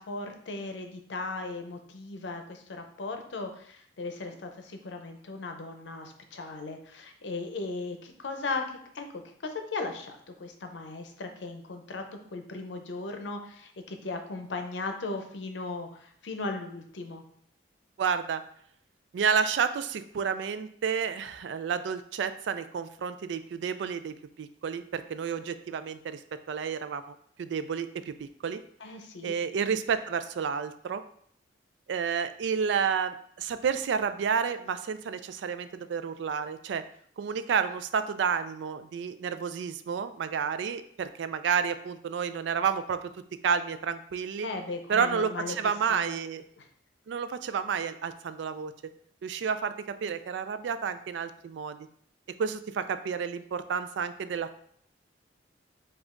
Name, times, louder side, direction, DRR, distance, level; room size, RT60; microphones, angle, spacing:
voice 1, 0.0-8.6 8.9-12.0 12.3-17.2 28.8-29.3 44.4-45.6 45.9-46.2 46.6-46.7, left 3 dB, 80° left, 5 dB, 0.6 m, -37 dB
voice 2, 18.0-18.4 19.1-26.2 26.5-28.6 29.2-31.0 31.9-36.8 37.2-43.1 43.4-44.5 44.9-46.4 47.1-48.7 49.2-49.7 50.0-51.8 52.4-54.6, right 6 dB, 80° right, 12 dB, 0.3 m, -30 dB
5.0 x 2.4 x 3.6 m, 0.63 s
head